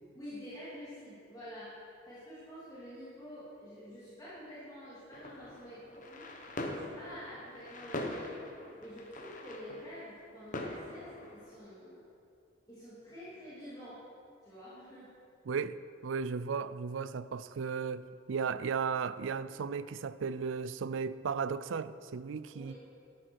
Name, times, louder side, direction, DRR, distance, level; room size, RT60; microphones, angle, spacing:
voice 1, 0.1-1.7 2.1-6.3 6.6-8.4 8.8-12.0 12.7-14.0 14.4-15.1 22.5-22.8, equal, 20° left, -11 dB, 2.9 m, -48 dB
sound 1, 5.1-11.6, left 1 dB, 40° left, 1.1 m, -43 dB
voice 2, 15.5-22.7, right 5 dB, 75° right, 15 dB, 0.4 m, -35 dB
13.0 x 11.0 x 4.7 m, 2.4 s
head